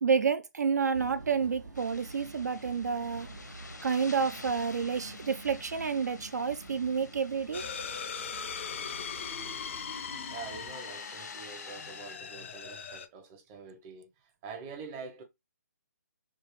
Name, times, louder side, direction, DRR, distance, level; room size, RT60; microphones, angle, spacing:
voice 1, 0.0-3.3 3.8-7.6, right 6 dB, 70° right, 0.4 m, -29 dB
sound 1, 0.9-10.7, right 2 dB, 85° right, 1.2 m, -48 dB
sound 2, 1.7-12.2, left 3 dB, 80° left, 0.7 m, -50 dB
sound 3, 7.5-13.1, left 6 dB, 45° left, 0.4 m, -39 dB
voice 2, 10.3-14.1 14.4-15.2, right 5 dB, 20° right, 0.6 m, -45 dB
3.5 x 2.4 x 3.0 m
figure-of-eight pair, 140°, 9 cm